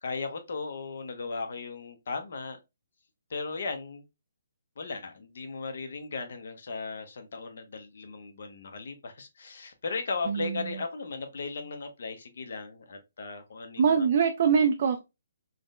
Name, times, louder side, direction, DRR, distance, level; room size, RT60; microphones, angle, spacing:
voice 1, 0.0-2.6 3.3-4.0 4.8-14.1, left 4 dB, 55° left, 0.7 m, -36 dB
voice 2, 10.3-10.8 13.8-15.0, right 6 dB, 40° right, 0.3 m, -24 dB
3.6 x 2.1 x 2.3 m
hypercardioid pair, 170°, 0 cm